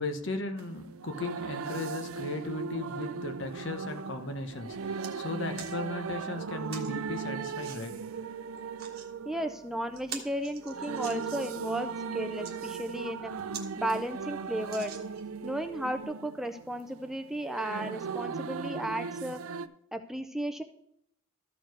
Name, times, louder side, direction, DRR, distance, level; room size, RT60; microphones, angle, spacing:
voice 1, 0.0-8.0, left 2 dB, 60° left, 6 dB, 1.0 m, -36 dB
sound 1, 0.6-19.7, right 5 dB, 85° right, 0.5 m, -38 dB
sound 2, 4.7-5.1 5.5-5.8 6.7-6.9 7.6-7.8 8.6-9.1 9.5-9.6 9.9-11.6 12.2-12.5 13.1-13.2 13.5-13.7 14.0-14.1 14.7-15.4 16.0-16.1, right 7 dB, 50° right, 1.4 m, -44 dB
voice 2, 9.3-15.0 15.4-20.6, right 1 dB, ahead, 7 dB, 0.4 m, -35 dB
13.5 x 4.6 x 4.7 m, 0.71 s
head